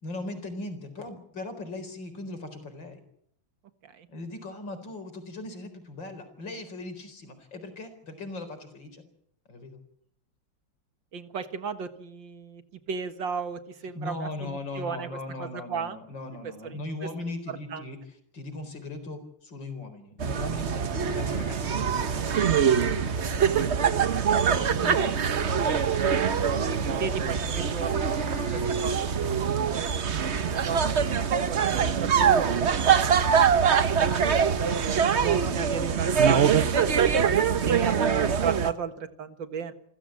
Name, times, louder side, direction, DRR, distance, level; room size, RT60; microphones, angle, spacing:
voice 1, 0.0-3.0 4.1-9.0 9.5-9.8 13.9-23.3 24.5-25.3, left 2 dB, 80° left, 8 dB, 4.9 m, -39 dB
voice 2, 11.1-12.6 12.9-15.1 15.4-16.0 16.6-16.8 17.5-17.8 24.1-24.4 26.3-39.7, right 6 dB, 80° right, 10 dB, 2.3 m, -36 dB
sound 1, 20.2-38.7, right 7 dB, 45° right, 1.1 m, -24 dB
sound 2, 20.8-30.9, left 1 dB, 15° right, 4.7 m, -44 dB
28.0 x 15.0 x 8.9 m, 0.71 s
omnidirectional pair, 2.0 m